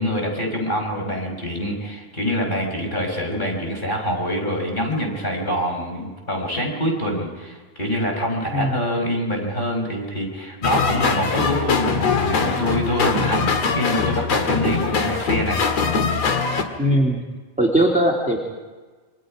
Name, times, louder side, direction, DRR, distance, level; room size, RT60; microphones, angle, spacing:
voice 1, 0.0-15.6, equal, 15° left, 1 dB, 5.4 m, -25 dB
sound 1, 10.6-16.6, left 5 dB, 55° left, 2.7 m, -22 dB
voice 2, 16.8-17.2 17.6-18.4, right 1 dB, 5° right, -2 dB, 1.6 m, -19 dB
27.5 x 25.0 x 5.0 m, 1.4 s
omnidirectional pair, 3.9 m